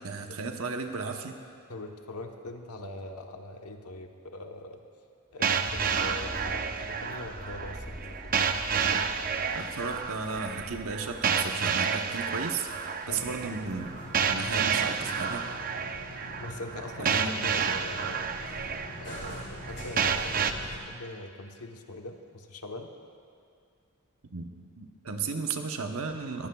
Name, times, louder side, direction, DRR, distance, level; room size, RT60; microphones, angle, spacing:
voice 1, 0.0-1.4 9.5-12.7 13.1-13.9 14.3-15.4 17.0-17.5 24.3-26.5, right 4 dB, 65° right, 5 dB, 1.0 m, -34 dB
voice 2, 1.7-4.8 5.3-9.1 13.1-13.3 16.4-18.3 19.0-22.9, left 1 dB, 90° left, 4 dB, 1.1 m, -42 dB
sound 1, 5.4-20.5, right 6 dB, 40° right, 0.5 m, -30 dB
sound 2, 5.5-14.5, equal, 5° left, 0.8 m, -47 dB
sound 3, 13.0-20.8, left 1 dB, 55° left, 2.8 m, -44 dB
22.0 x 15.5 x 2.4 m, 2.2 s
head